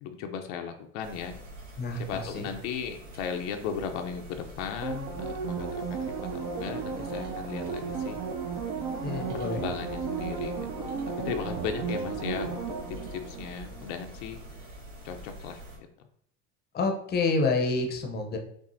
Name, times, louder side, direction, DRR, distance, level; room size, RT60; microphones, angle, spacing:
voice 1, 0.0-1.4 2.0-6.0 6.3-8.2 9.2-10.5 10.8-14.4 15.0-15.9, left 7 dB, 75° left, 5 dB, 0.6 m, -36 dB
sound 1, 1.0-15.8, right 1 dB, 90° right, 1.4 m, -45 dB
voice 2, 1.8-2.5 9.0-9.6 16.7-18.4, left 3 dB, 25° left, 3 dB, 0.6 m, -28 dB
sound 2, 4.8-14.2 14.6-14.7, right 5 dB, 50° right, 0.6 m, -34 dB
6.0 x 2.0 x 2.6 m, 0.70 s
supercardioid pair, 105°, 36 cm